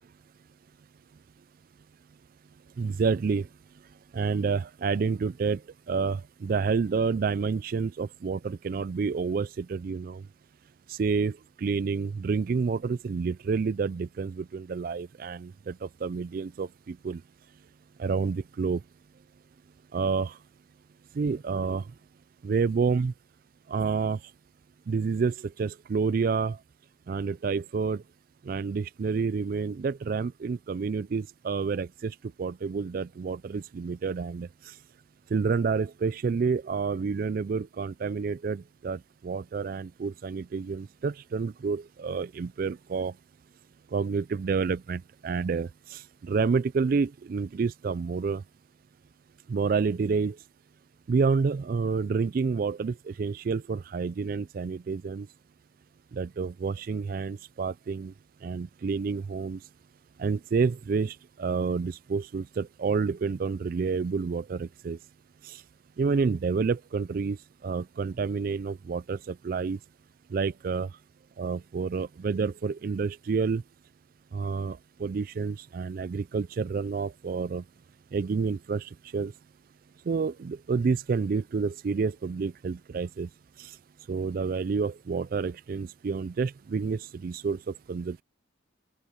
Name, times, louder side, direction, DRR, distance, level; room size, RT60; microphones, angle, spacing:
voice 1, 2.8-3.5 4.1-5.6 5.9-10.2 10.9-17.2 18.0-18.8 19.9-20.4 21.1-21.8 22.4-23.1 23.7-24.2 24.9-26.6 27.1-28.0 28.5-34.8 35.3-43.1 43.9-48.4 49.5-50.4 51.1-55.3 56.1-58.1 58.4-59.6 60.2-65.0 65.4-65.6 66.0-69.8 70.3-70.9 71.4-73.6 74.3-77.6 78.1-79.3 80.1-83.3 83.6-83.8 84.1-88.2, right 5 dB, 45° right, 0.3 m, -29 dB
open air
head